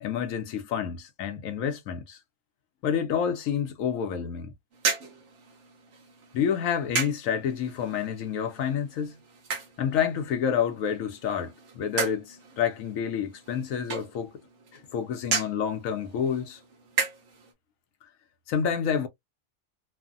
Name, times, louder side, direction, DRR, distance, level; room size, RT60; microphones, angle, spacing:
voice 1, 0.0-2.2 2.8-4.5 6.3-9.2 9.8-14.3 14.7-16.6 18.5-19.1, left 8 dB, 70° left, 1.0 m, -29 dB
sound 1, 4.7-17.5, right 5 dB, 60° right, 1.1 m, -36 dB
3.2 x 2.1 x 2.5 m
omnidirectional pair, 1.5 m